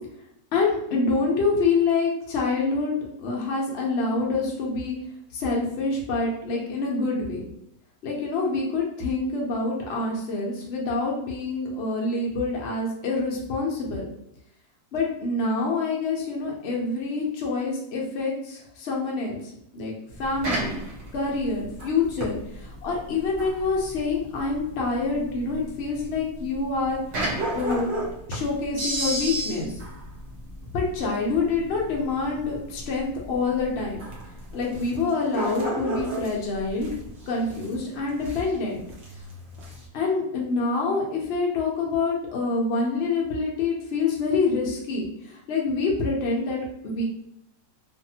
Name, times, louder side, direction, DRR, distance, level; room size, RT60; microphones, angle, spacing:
voice 1, 0.5-5.0 5.3-7.4 8.0-14.1 14.9-19.4 19.7-20.8 21.1-27.0 27.5-27.9 28.3-29.7 30.7-34.0 34.5-36.9 37.3-38.8 39.9-47.0, left 3 dB, 70° left, -2 dB, 0.6 m, -26 dB
sound 1, 20.1-39.9, right 1 dB, 60° right, 0.8 m, -34 dB
2.6 x 2.5 x 2.7 m, 0.77 s
omnidirectional pair, 1.8 m